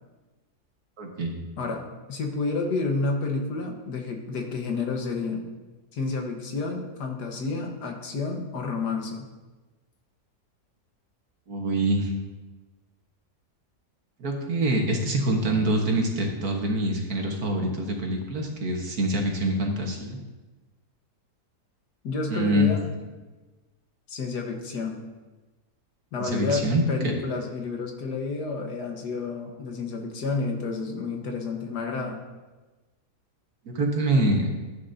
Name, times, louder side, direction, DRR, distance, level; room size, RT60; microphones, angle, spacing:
voice 1, 1.0-1.4 11.5-12.1 14.2-20.2 22.3-22.7 26.2-26.8 33.7-34.5, right 1 dB, 65° right, 1 dB, 1.9 m, -25 dB
voice 2, 1.6-5.5 5.9-9.3 22.0-22.8 24.1-25.0 26.1-32.2, left 3 dB, 80° left, 2 dB, 1.9 m, -30 dB
13.5 x 9.4 x 2.8 m, 1.2 s
omnidirectional pair, 1.7 m